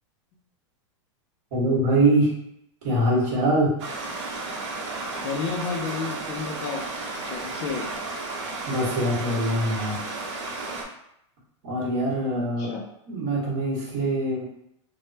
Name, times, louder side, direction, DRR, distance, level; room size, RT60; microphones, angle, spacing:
voice 1, 1.5-2.3 2.8-3.7 8.6-10.0 11.6-12.7 13.1-14.4, right 1 dB, 45° right, -5 dB, 1.4 m, -23 dB
Stream, 3.8-10.8, right 3 dB, 65° right, 0.8 m, -33 dB
voice 2, 5.2-6.8 7.3-7.9 12.3-12.8, left 5 dB, 35° left, 0 dB, 0.4 m, -31 dB
3.4 x 2.1 x 2.7 m, 0.76 s
supercardioid pair, 165°, 16 cm